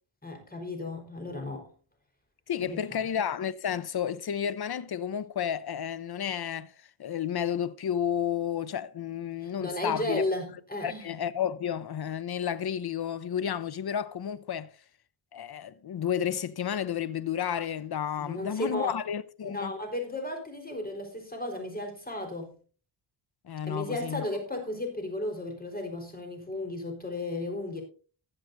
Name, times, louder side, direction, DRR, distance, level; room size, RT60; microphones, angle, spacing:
voice 1, 0.2-1.7 2.6-3.1 9.4-11.2 18.2-19.0 19.5-22.6 23.6-27.8, left 1 dB, 20° left, 4.1 m, -34 dB
voice 2, 2.5-6.7 7.0-10.2 10.8-14.7 15.3-19.7 23.4-24.2, left 9 dB, 55° left, 0.8 m, -31 dB
19.5 x 7.6 x 2.6 m
wide cardioid pair, 90°, 47 cm